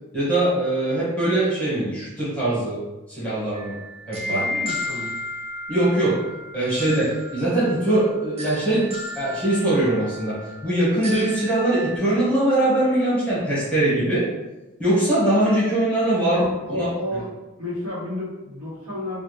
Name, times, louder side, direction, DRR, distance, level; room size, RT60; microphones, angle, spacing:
voice 1, 0.1-2.8 3.1-3.8 4.1-4.4 5.7-6.2 6.5-8.9 9.1-10.3 10.6-14.2 14.8-16.9, right 1 dB, 5° left, -10 dB, 1.1 m, -21 dB
sound 1, 3.5-12.0, left 1 dB, 30° right, 0.5 m, -34 dB
voice 2, 4.3-5.1 16.2-17.3 17.6-19.2, left 1 dB, 85° right, -10 dB, 1.2 m, -31 dB
3.3 x 2.4 x 3.0 m, 1.0 s
head